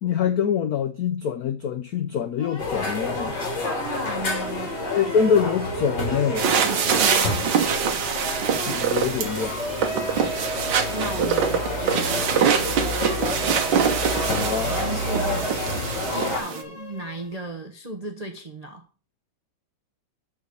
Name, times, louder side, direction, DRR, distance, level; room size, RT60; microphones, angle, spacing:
voice 1, 0.0-3.4 4.9-6.5 8.7-9.6 14.3-14.7, left 7 dB, 90° left, 0.8 m, -25 dB
sound 1, 2.4-17.5, equal, 15° left, 3.0 m, -36 dB
sound 2, 2.6-16.4, left 2 dB, 50° left, 3.0 m, -30 dB
voice 2, 3.6-4.8 6.5-7.6 10.0-10.3 10.9-12.9 14.7-15.6 16.1-18.8, right 2 dB, 80° right, 0.3 m, -35 dB
sound 3, 6.4-16.6, right 7 dB, 60° right, 1.6 m, -24 dB
6.4 x 5.1 x 6.8 m
omnidirectional pair, 2.4 m